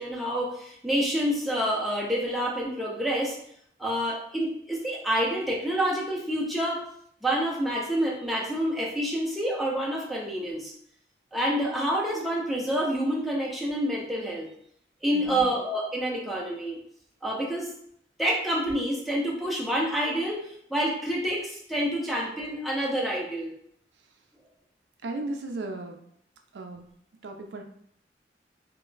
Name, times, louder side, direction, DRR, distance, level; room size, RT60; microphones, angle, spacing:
voice 1, 0.0-3.4 3.8-6.8 7.2-10.7 11.3-14.5 15.0-16.8 17.2-17.7 18.2-23.5, equal, ahead, -4 dB, 0.5 m, -28 dB
voice 2, 25.0-26.0 26.5-26.9 27.2-27.6, right 2 dB, 80° right, 4 dB, 0.4 m, -36 dB
2.2 x 2.0 x 3.7 m, 0.68 s
head